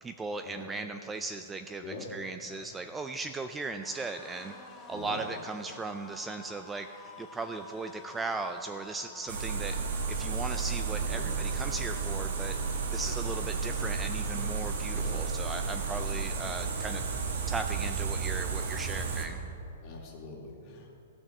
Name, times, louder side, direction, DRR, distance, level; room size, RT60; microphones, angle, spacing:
voice 1, 0.0-4.5 4.9-6.9 7.2-9.8 10.1-12.6 12.9-17.0 17.5-19.4, right 3 dB, 10° right, 7 dB, 0.3 m, -37 dB
sound 1, 2.3-17.5 17.8-18.1 18.3-19.1, left 3 dB, 15° left, 1.2 m, -52 dB
voice 2, 4.9-5.2 10.9-11.3 14.9-15.3 19.8-20.9, left 2 dB, 35° left, -1 dB, 2.2 m, -43 dB
sound 2, 9.3-19.3, right 5 dB, 70° right, 1.6 m, -32 dB
14.0 x 6.0 x 6.6 m, 2.6 s
hypercardioid pair, 155°, 0 cm